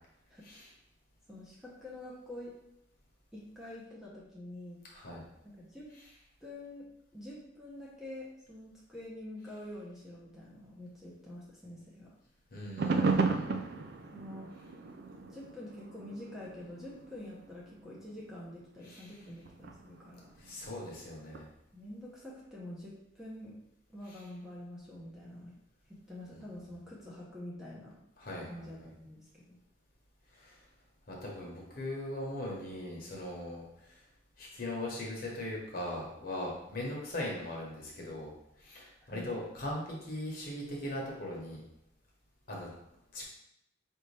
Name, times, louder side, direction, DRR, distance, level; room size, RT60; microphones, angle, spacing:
voice 1, 1.3-2.6 3.3-4.8 5.4-5.9 6.4-12.1 14.1-14.5 15.3-20.3 21.7-23.6 23.9-25.5 25.9-28.0 28.5-29.6 39.0-39.3, left 1 dB, 5° right, -6 dB, 0.7 m, -46 dB
voice 2, 4.9-5.2 12.5-13.6 18.8-19.1 20.4-21.5 24.1-24.2 26.3-26.4 28.2-28.6 30.3-30.6 31.1-34.0 34.4-38.3 38.6-41.6 42.5-42.7 43.1-43.2, left 1 dB, 50° left, -3 dB, 1.1 m, -40 dB
sound 1, 12.8-18.3 18.8-20.6 21.3-21.4, right 4 dB, 60° right, 0.3 m, -34 dB
4.8 x 2.7 x 3.3 m, 0.80 s
head